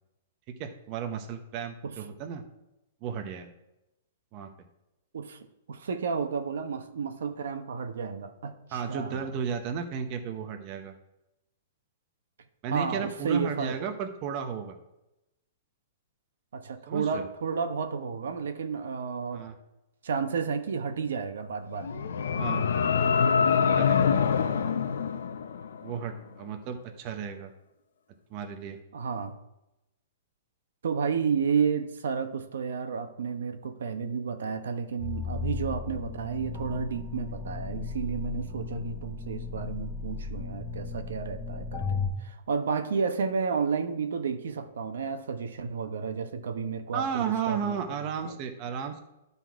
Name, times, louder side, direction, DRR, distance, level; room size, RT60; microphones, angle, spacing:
voice 1, 0.6-2.4 3.0-3.5 4.3-4.5 8.7-10.9 12.6-14.8 16.9-17.3 19.3-19.5 22.4-22.7 23.8-24.0 25.8-27.5 28.3-28.8 46.9-49.0, right 7 dB, 30° right, 6 dB, 0.7 m, -34 dB
voice 2, 5.7-9.3 12.7-13.7 16.5-19.4 20.0-22.1 28.9-29.4 30.8-47.8 48.2-48.3, right 6 dB, 80° right, 8 dB, 0.9 m, -31 dB
sound 1, 21.7-25.9, left 6 dB, 90° left, 0.6 m, -25 dB
sound 2, 35.0-42.1, left 5 dB, 15° left, 1.1 m, -35 dB
12.0 x 4.1 x 4.6 m, 0.92 s
hypercardioid pair, 170°, 0 cm